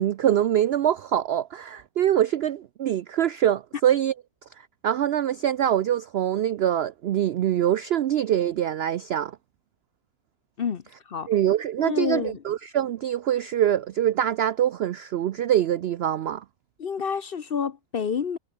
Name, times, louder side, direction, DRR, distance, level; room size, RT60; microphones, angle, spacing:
voice 1, 0.0-4.1 4.6-9.4 11.3-16.4, right 10 dB, 75° right, 0.6 m, -24 dB
voice 2, 10.6-11.3 11.8-12.4 16.8-18.4, left 6 dB, 45° left, 0.8 m, -29 dB
omnidirectional pair, 1.6 m